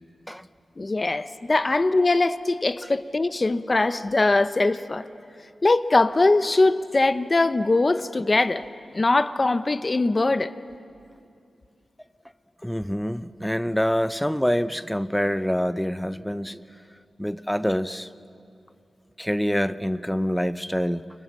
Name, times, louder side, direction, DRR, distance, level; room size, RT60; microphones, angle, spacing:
voice 1, 0.8-5.0 5.6-8.6 8.9-10.5, left 2 dB, 30° left, 0.8 m, -21 dB
voice 2, 12.6-16.8 17.2-18.1 19.2-21.0, equal, 5° left, 0.6 m, -26 dB
29.5 x 24.5 x 7.6 m
wide cardioid pair, 100°, 0 cm